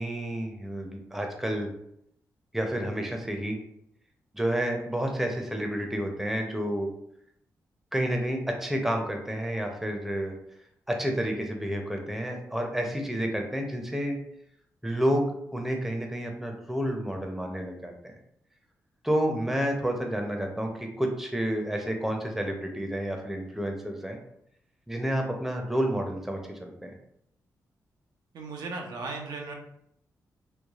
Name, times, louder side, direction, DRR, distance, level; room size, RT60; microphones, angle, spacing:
voice 1, 0.0-1.7 2.5-3.6 4.3-6.9 7.9-10.3 10.9-14.2 14.8-17.9 19.0-24.2 24.9-26.9, equal, 5° right, 2 dB, 0.6 m, -30 dB
voice 2, 28.3-29.5, right 3 dB, 80° right, 1 dB, 0.5 m, -36 dB
3.2 x 2.0 x 2.4 m, 0.75 s
cardioid pair, 60°, 7 cm